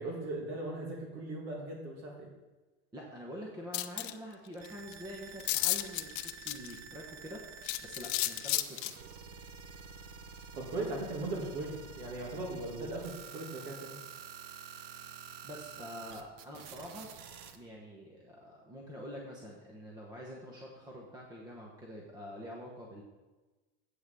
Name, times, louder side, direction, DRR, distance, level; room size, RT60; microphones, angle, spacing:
voice 1, 0.0-2.3 10.5-14.0, right 2 dB, 70° right, -1 dB, 2.3 m, -38 dB
voice 2, 2.9-9.1 15.4-17.1 17.5-23.0, equal, 10° right, -2 dB, 0.9 m, -46 dB
sound 1, 3.7-4.1 4.6-4.7 4.9-5.0 5.4-6.8 7.6-8.9, left 17 dB, 55° left, 0.5 m, -32 dB
sound 2, 4.6-17.6, right 6 dB, 45° right, 0.8 m, -49 dB
8.2 x 5.7 x 6.9 m, 1.2 s
supercardioid pair, 165°, 32 cm